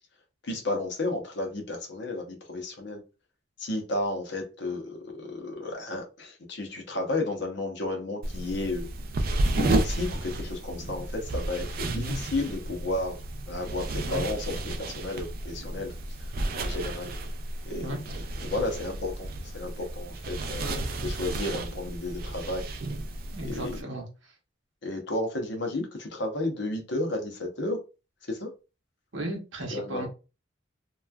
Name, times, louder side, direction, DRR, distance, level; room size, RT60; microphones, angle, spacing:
voice 1, 0.4-3.0 3.6-8.9 9.5-17.1 17.7-22.7 23.4-23.8 24.8-27.8 28.3-28.5 29.7-30.1, left 2 dB, 65° left, 3 dB, 0.8 m, -33 dB
sound 1, 8.2-23.8, right 2 dB, 50° right, 0.4 m, -32 dB
voice 2, 11.8-12.2 14.0-14.2 17.8-18.0 20.6-20.9 23.3-24.1 29.1-30.1, right 1 dB, 75° right, 2 dB, 0.9 m, -35 dB
3.0 x 2.3 x 2.3 m, 0.31 s
head